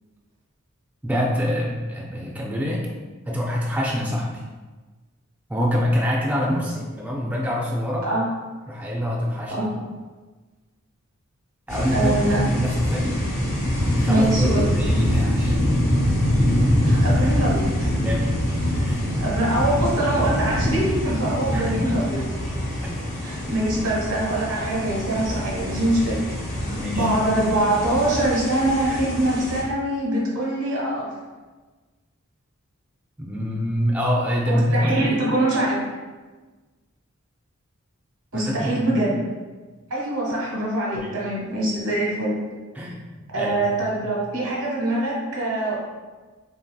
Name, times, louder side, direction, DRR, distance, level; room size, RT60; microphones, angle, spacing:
voice 1, 1.0-2.8 3.3-4.4 5.5-8.1 8.7-9.7 11.7-13.1 14.0-15.6 17.9-18.4 18.8-19.0 21.5-21.9 22.8-22.9 26.6-27.1 33.2-35.2 38.3-39.1 40.9-41.1 42.7-43.7, equal, 5° right, -3 dB, 0.3 m, -25 dB
sound 1, 11.7-29.6, left 1 dB, 35° left, 0.6 m, -24 dB
voice 2, 11.9-12.4 14.1-14.7 16.8-17.9 19.2-22.2 23.2-26.2 26.9-31.1 34.4-35.8 38.3-39.2 39.9-42.3 43.3-45.8, right 1 dB, 90° right, -4 dB, 1.0 m, -23 dB
3.1 x 2.6 x 2.2 m, 1.3 s
head